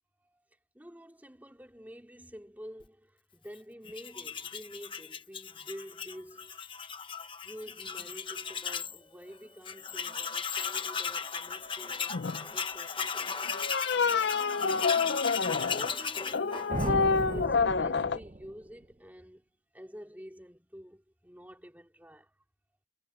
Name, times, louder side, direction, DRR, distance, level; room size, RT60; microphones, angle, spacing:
voice 1, 0.7-6.5 7.4-13.8 14.4-15.2 15.7-19.4 19.7-22.3, equal, 10° right, 3.1 m, -49 dB
Tools, 3.9-9.0 9.3-9.4 9.6-17.2, left 6 dB, 25° left, 1.1 m, -36 dB
sound 1, 12.1-12.4 13.5-15.9 16.3-18.2, left 5 dB, 60° left, 0.5 m, -28 dB
sound 2, 16.7-18.7, right 2 dB, 30° right, 0.8 m, -35 dB
head